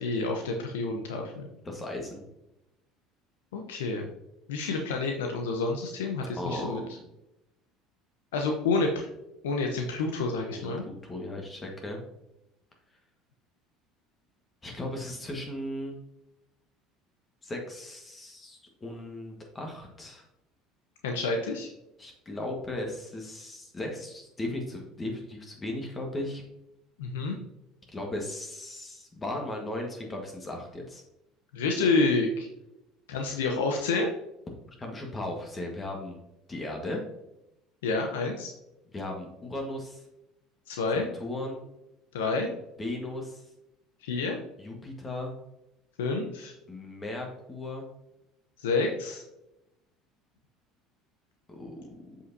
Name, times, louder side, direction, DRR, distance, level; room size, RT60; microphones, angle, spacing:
voice 1, 0.0-1.5 3.5-4.1 4.5-6.8 8.3-9.1 9.4-10.8 21.0-21.7 27.0-27.4 31.5-32.5 33.1-34.1 37.8-38.5 40.7-41.0 42.1-42.5 44.0-44.4 46.0-46.5 48.6-49.2, left 3 dB, 85° left, 2 dB, 0.8 m, -28 dB
voice 2, 1.6-2.2 6.4-6.8 10.5-12.0 14.6-16.0 17.4-20.2 22.0-26.4 27.9-31.0 34.8-36.2 36.5-37.0 38.9-40.0 40.9-41.6 42.8-43.4 44.6-45.3 46.7-47.9 51.5-52.2, left 1 dB, 25° left, 1 dB, 1.5 m, -36 dB
7.4 x 5.6 x 2.7 m, 0.89 s
hypercardioid pair, 80°, 0 cm